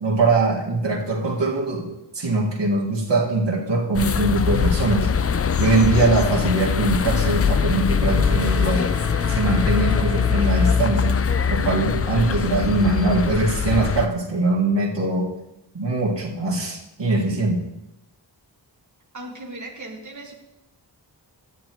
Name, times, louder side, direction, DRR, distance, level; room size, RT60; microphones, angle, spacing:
voice 1, 0.0-5.1 5.6-8.9 9.3-11.2 11.5-15.3 15.7-17.6, right 2 dB, 75° right, -3 dB, 1.9 m, -22 dB
sound 1, 3.9-14.1, left 7 dB, 35° left, 0.4 m, -22 dB
Bowed string instrument, 7.6-11.2, left 1 dB, 5° right, 3.4 m, -38 dB
voice 2, 19.1-20.3, right 2 dB, 40° right, 0 dB, 1.7 m, -37 dB
13.0 x 9.6 x 3.0 m, 0.92 s
cardioid pair, 45°, 44 cm